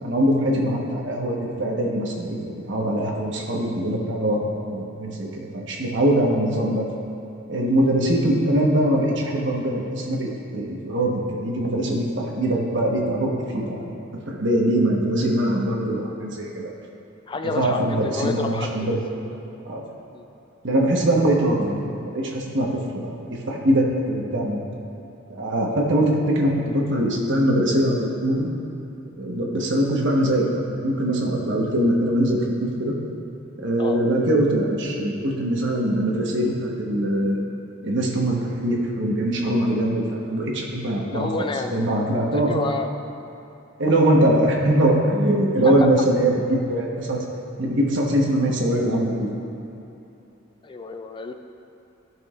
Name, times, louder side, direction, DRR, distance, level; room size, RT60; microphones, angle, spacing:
voice 1, 0.0-2.4 2.7-6.8 7.5-13.9 14.3-16.7 17.4-19.0 19.6-19.8 20.6-22.7 22.9-23.1 23.5-24.6 25.3-28.5 29.2-32.9 33.6-37.4 37.8-41.3 41.7-42.5 43.8-47.2 47.6-49.3, right 1 dB, 60° right, -2 dB, 1.2 m, -22 dB
voice 2, 17.3-18.8 19.2-19.3 20.1-20.3 33.8-34.0 41.0-41.7 42.3-42.9 50.6-51.3, left 3 dB, 25° left, 6 dB, 0.3 m, -30 dB
14.5 x 6.1 x 2.5 m, 2.9 s
head